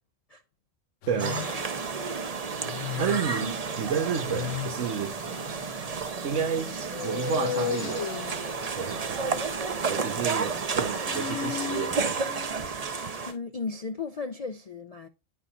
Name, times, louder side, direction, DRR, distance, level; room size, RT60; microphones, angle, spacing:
sound 1, 1.0-13.4, left 11 dB, 80° left, 1.0 m, -38 dB
voice 1, 1.1-1.4 3.0-5.2 6.2-8.1 8.7-9.6 9.9-12.3, right 7 dB, 75° right, 1.2 m, -31 dB
sound 2, 1.2-13.3, right 5 dB, 40° right, 0.6 m, -31 dB
voice 2, 13.2-15.1, left 4 dB, 50° left, 0.4 m, -35 dB
10.0 x 4.7 x 4.0 m
omnidirectional pair, 1.3 m